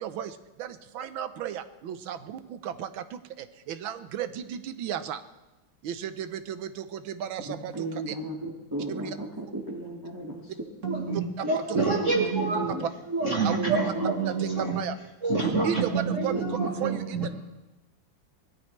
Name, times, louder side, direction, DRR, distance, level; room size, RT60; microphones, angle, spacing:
voice 1, 0.0-5.2 5.8-8.1 8.9-9.2 11.4-11.9 12.7-12.9 13.4-13.6 14.2-14.9 15.4-17.3, right 9 dB, 85° right, 11 dB, 1.7 m, -34 dB
voice 2, 7.5-10.4 11.0-11.2 11.7-12.1 12.4-12.8 13.6-13.7 16.3-16.4, right 2 dB, 10° right, -2 dB, 1.7 m, -35 dB
voice 3, 10.8-12.7 13.1-14.8 15.2-17.3, right 3 dB, 40° right, 0 dB, 1.7 m, -27 dB
24.5 x 17.5 x 3.3 m, 1.1 s
omnidirectional pair, 2.1 m